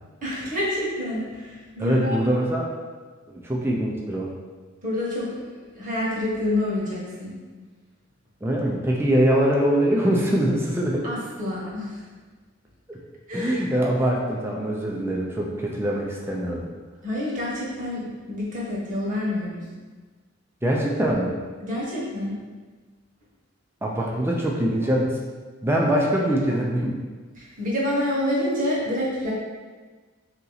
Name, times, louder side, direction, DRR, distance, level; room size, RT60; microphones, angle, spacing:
voice 1, 0.2-2.2 4.8-7.3 11.0-12.0 13.3-13.6 17.0-19.6 21.6-22.4 27.4-29.3, left 1 dB, 45° right, -6 dB, 1.3 m, -28 dB
voice 2, 1.8-2.7 3.4-4.3 8.4-11.0 12.9-13.0 13.3-16.7 20.6-21.3 23.8-25.2 25.6-26.9, right 1 dB, 10° right, -2 dB, 0.5 m, -23 dB
3.9 x 2.9 x 3.9 m, 1.4 s
head